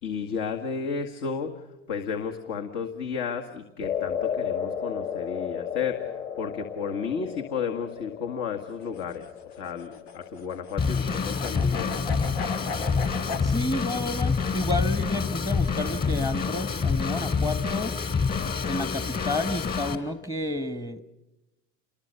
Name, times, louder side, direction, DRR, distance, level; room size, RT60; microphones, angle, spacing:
voice 1, 0.0-11.9, left 6 dB, 65° left, 4 dB, 2.1 m, -33 dB
sound 1, 3.8-12.2, left 8 dB, 45° left, 5.6 m, -35 dB
sound 2, 8.7-13.5, left 4 dB, 80° left, 2.0 m, -37 dB
Drum kit / Drum, 10.8-20.0, left 5 dB, 30° left, 3.2 m, -27 dB
voice 2, 13.4-17.9 18.6-21.0, left 1 dB, 10° left, 11 dB, 1.2 m, -31 dB
28.5 x 21.5 x 6.8 m, 0.99 s
supercardioid pair, 105°, 32 cm